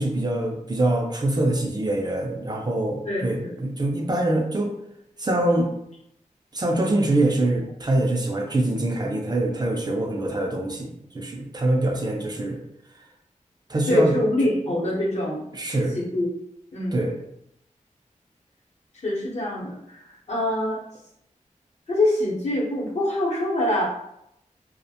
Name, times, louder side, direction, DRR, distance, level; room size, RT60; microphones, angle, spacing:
voice 1, 0.0-4.7 5.2-5.7 6.5-10.9 11.1-12.6 13.7-14.1 15.5-16.0 16.9-17.1, right 1 dB, 30° right, 0 dB, 0.4 m, -24 dB
voice 2, 3.1-3.5 13.9-15.5 15.9-16.3 16.7-17.0 19.0-20.0 20.3-20.8 21.9-23.8, left 1 dB, 55° left, -4 dB, 0.8 m, -24 dB
2.3 x 2.1 x 2.7 m, 0.77 s
wide cardioid pair, 105°, 13 cm